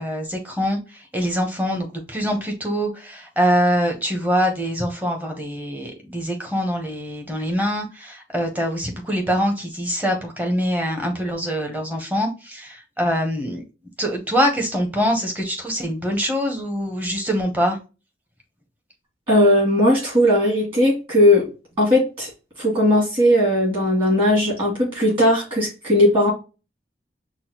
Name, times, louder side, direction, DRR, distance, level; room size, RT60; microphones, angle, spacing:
voice 1, 0.0-13.6 14.0-17.8, equal, 10° right, 0.9 m, -24 dB
voice 2, 19.3-21.5 21.8-22.3 22.6-26.3, left 1 dB, 30° right, 2.5 m, -18 dB
6.1 x 2.2 x 2.9 m
head